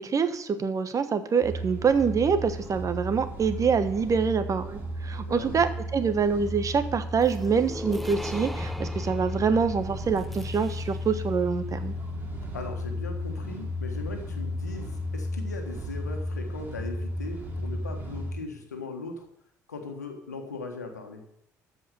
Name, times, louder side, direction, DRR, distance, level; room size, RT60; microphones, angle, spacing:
voice 1, 0.0-11.9, right 6 dB, 40° right, 11 dB, 1.2 m, -25 dB
sound 1, 1.4-18.3, equal, 20° right, 3.5 m, -34 dB
voice 2, 5.3-5.6 12.5-19.3 19.7-21.2, left 3 dB, 85° left, 5 dB, 1.4 m, -39 dB
sound 2, 7.2-11.2, left 1 dB, ahead, 0.8 m, -39 dB
13.5 x 5.0 x 8.2 m, 0.76 s
figure-of-eight pair, 50°, 9 cm